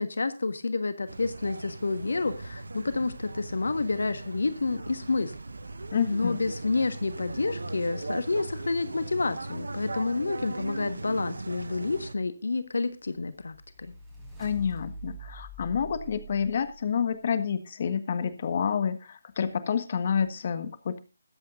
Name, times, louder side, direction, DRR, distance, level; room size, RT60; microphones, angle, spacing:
voice 1, 0.0-5.3 6.0-13.9, left 3 dB, 70° left, 12 dB, 1.4 m, -29 dB
sound 1, 1.1-12.1, right 2 dB, 75° right, 1.1 m, -38 dB
voice 2, 5.9-6.4 14.4-21.0, left 7 dB, 45° left, 12 dB, 1.6 m, -29 dB
sound 2, 12.9-17.1, equal, 5° right, 5.8 m, -44 dB
21.5 x 8.5 x 2.6 m, 0.30 s
figure-of-eight pair, 150°, 0 cm